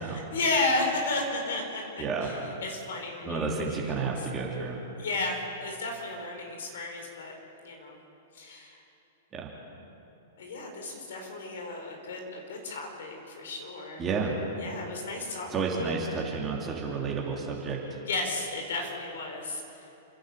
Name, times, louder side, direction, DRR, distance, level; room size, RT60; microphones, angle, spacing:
voice 1, 0.0-1.8 2.2-2.4 2.6-4.1 5.0-7.4 7.6-8.0 8.3-8.8 10.4-14.0 14.6-15.5 15.8-15.9 18.0-19.8, left 2 dB, 70° left, 2 dB, 4.9 m, -33 dB
voice 2, 2.0-2.3 3.2-4.8 9.3-9.5 14.0-14.3 15.5-17.8, right 4 dB, 25° right, -2 dB, 3.3 m, -31 dB
29.5 x 11.5 x 8.3 m, 2.9 s
hypercardioid pair, 110°, 0 cm